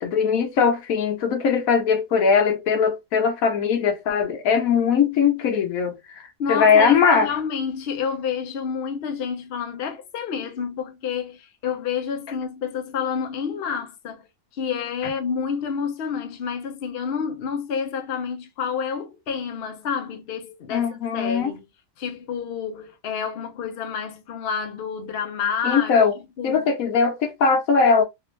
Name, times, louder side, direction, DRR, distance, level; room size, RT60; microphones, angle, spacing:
voice 1, 0.0-6.2 6.5-7.3 20.7-21.5 25.6-26.1 26.4-28.0, left 6 dB, 75° left, 1.2 m, -20 dB
voice 2, 6.4-14.2 14.5-21.6 22.0-25.9 26.4-26.6, left 6 dB, 55° left, 0.8 m, -29 dB
3.0 x 2.5 x 3.0 m
omnidirectional pair, 1.5 m